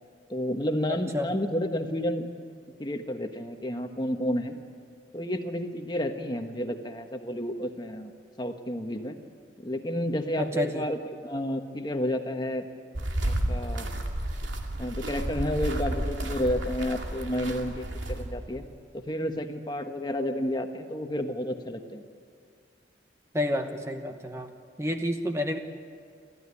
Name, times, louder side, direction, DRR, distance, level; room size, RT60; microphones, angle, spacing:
voice 1, 0.3-2.3 2.8-4.6 5.1-8.1 8.4-9.2 9.6-12.7 13.2-13.9 14.8-18.6 18.9-22.0, equal, 25° left, 5 dB, 1.3 m, -31 dB
voice 2, 10.4-10.8 23.3-24.5 24.8-25.6, left 1 dB, 15° right, 5 dB, 1.1 m, -29 dB
sound 1, 12.9-18.5, right 1 dB, 80° right, 2.5 m, -31 dB
28.5 x 13.5 x 9.8 m, 2.1 s
head